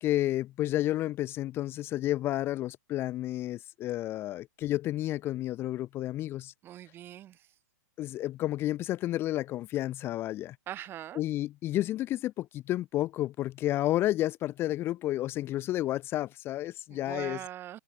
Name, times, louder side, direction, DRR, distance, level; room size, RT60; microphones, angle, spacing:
voice 1, 0.0-6.5 8.0-10.6 11.2-17.4, left 14 dB, 25° left, 0.7 m, -31 dB
voice 2, 6.6-7.5 10.7-11.2 16.9-17.8, right 12 dB, 20° right, 1.7 m, -42 dB
hypercardioid pair, 140°, 10 cm